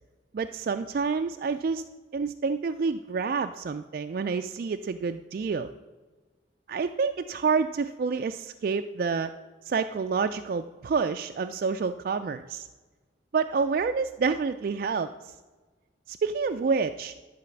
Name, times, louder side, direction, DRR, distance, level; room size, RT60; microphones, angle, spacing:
voice 1, 0.3-1.8 2.1-5.7 6.7-9.3 9.7-12.7 13.3-15.3 16.1-17.1, right 5 dB, 50° right, 8 dB, 0.3 m, -28 dB
11.5 x 4.1 x 7.0 m, 1.3 s
head